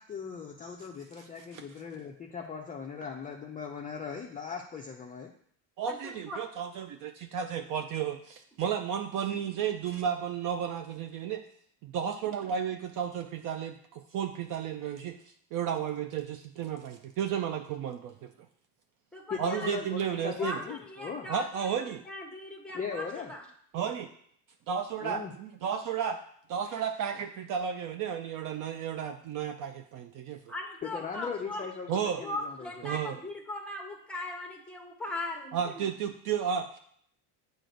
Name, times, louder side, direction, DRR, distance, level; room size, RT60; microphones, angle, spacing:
voice 1, 0.0-5.3 19.3-21.3 22.7-23.3 25.0-25.3 30.8-32.7, left 6 dB, 20° left, 0 dB, 0.5 m, -38 dB
voice 2, 5.8-11.4 11.8-18.3 19.4-20.6 21.3-22.0 23.7-24.1 24.7-26.2 26.5-30.5 31.9-32.2 32.8-33.2 35.5-36.8, right 8 dB, 45° right, 6 dB, 0.5 m, -33 dB
voice 3, 19.1-19.7 20.4-21.7 22.1-23.4 30.5-31.6 32.2-35.5, left 1 dB, ahead, 1 dB, 1.2 m, -39 dB
7.6 x 2.5 x 5.1 m, 0.64 s
supercardioid pair, 110°, 46 cm